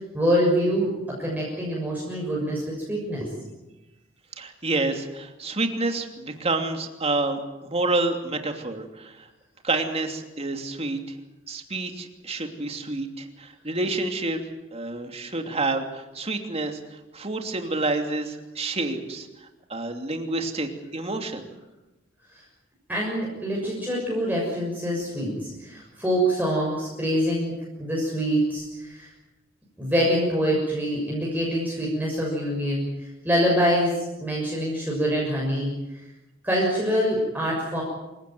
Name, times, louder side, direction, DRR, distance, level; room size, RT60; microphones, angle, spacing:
voice 1, 0.1-0.9 1.2-3.3 22.3-22.4 22.9-27.5 27.8-29.1 29.8-36.0 36.4-37.8, equal, 10° right, -4 dB, 6.6 m, -25 dB
voice 2, 4.4-7.4 7.7-9.3 9.6-11.2 11.5-14.4 14.7-21.5, right 2 dB, 30° right, 4 dB, 2.9 m, -28 dB
27.0 x 17.0 x 9.4 m, 1.0 s
head